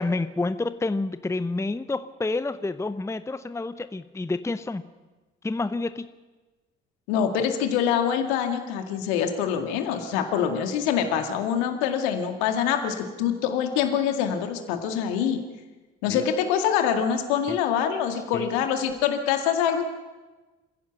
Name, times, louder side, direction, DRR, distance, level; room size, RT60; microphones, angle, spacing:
voice 1, 0.0-4.8 5.4-6.1 16.1-16.3 17.5-17.6 18.3-18.5, left 3 dB, 10° left, 14 dB, 0.8 m, -29 dB
voice 2, 7.1-15.4 16.0-19.8, left 8 dB, 70° left, 6 dB, 2.1 m, -25 dB
27.0 x 16.0 x 6.0 m, 1.2 s
figure-of-eight pair, 50°, 34 cm